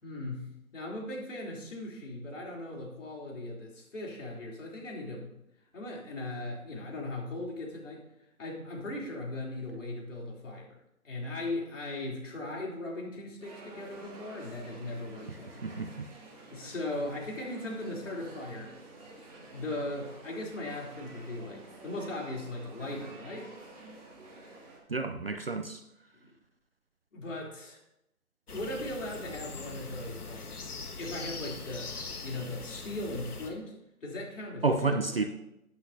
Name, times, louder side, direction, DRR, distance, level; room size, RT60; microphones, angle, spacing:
voice 1, 0.0-5.3 5.7-8.0 8.4-10.8 11.0-15.7 16.5-18.7 19.5-23.5 26.2-26.3 27.1-27.8 28.5-30.5 31.0-31.9 32.2-33.7 34.0-35.3, left 2 dB, 55° left, -2 dB, 3.5 m, -38 dB
sound 1, 13.4-24.8, right 2 dB, 25° right, 2.4 m, -50 dB
voice 2, 15.6-16.1 24.9-25.8 34.6-35.2, right 3 dB, 40° right, 7 dB, 0.6 m, -30 dB
sound 2, 28.5-33.5, left 3 dB, 80° left, 1.5 m, -42 dB
14.0 x 8.6 x 2.8 m, 0.86 s
figure-of-eight pair, 160°, 45 cm